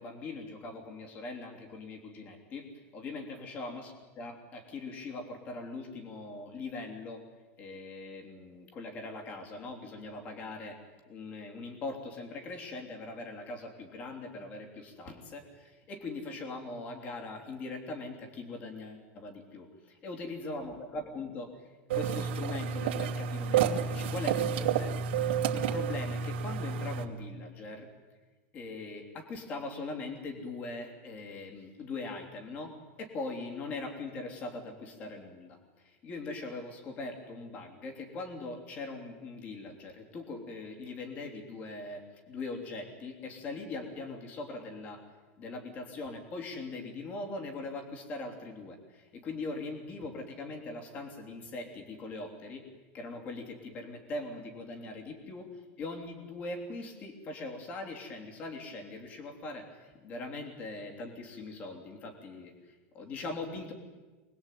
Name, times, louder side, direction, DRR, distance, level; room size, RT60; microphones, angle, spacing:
voice 1, 0.0-7.2 7.6-10.8 11.1-19.7 20.0-27.9 28.5-45.0 45.4-52.7 52.9-63.7, left 3 dB, 25° left, 3 dB, 3.2 m, -41 dB
sound 1, 21.9-27.0, right 7 dB, 70° right, 2.8 m, -30 dB
26.0 x 20.0 x 9.2 m, 1.3 s
supercardioid pair, 180°, 6 cm